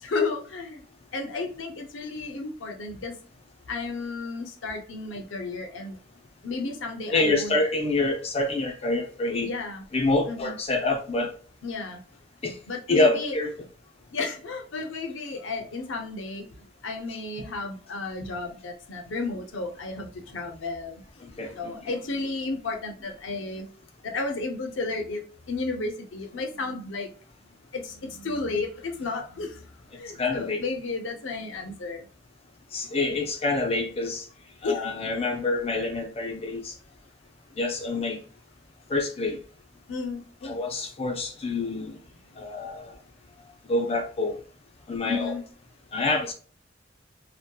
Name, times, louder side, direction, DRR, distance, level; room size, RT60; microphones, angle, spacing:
voice 1, 0.0-0.8 1.1-3.2 3.7-6.0 6.4-7.6 9.4-9.8 10.3-10.6 11.6-12.0 12.7-13.3 14.1-16.5 16.8-21.0 21.4-23.7 24.0-27.1 27.7-29.6 30.0-32.1 33.0-33.1 34.6-34.8 39.9-40.6 45.1-45.4, left 3 dB, 90° left, 0.6 m, -33 dB
voice 2, 7.1-9.5 9.9-11.3 12.4-12.6 12.9-13.5 21.4-21.8 30.2-30.6 32.7-34.2 34.6-36.7 37.6-38.2 38.9-39.4 40.4-42.0 42.4-42.8 43.7-44.4 44.9-45.3 45.9-46.3, left 2 dB, 35° left, 0.5 m, -26 dB
2.7 x 2.1 x 2.2 m
head